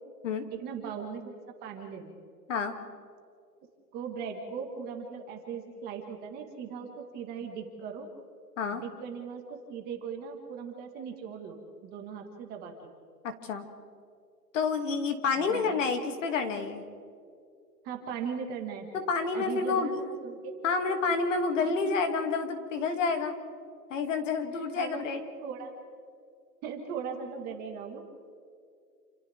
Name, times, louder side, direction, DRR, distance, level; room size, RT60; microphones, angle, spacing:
voice 1, 0.5-2.1 3.9-8.1 8.7-12.7 15.4-15.7 17.8-18.9 19.3-20.5 21.6-21.9 24.8-25.1 25.4-25.7 26.6-28.0, right 6 dB, 20° right, 3 dB, 1.9 m, -39 dB
voice 2, 13.2-13.6 14.5-16.8 19.1-20.0 20.6-23.3 23.9-25.2, left 4 dB, 50° left, 5 dB, 2.6 m, -29 dB
28.5 x 28.0 x 3.6 m, 2.3 s
hypercardioid pair, 155°, 48 cm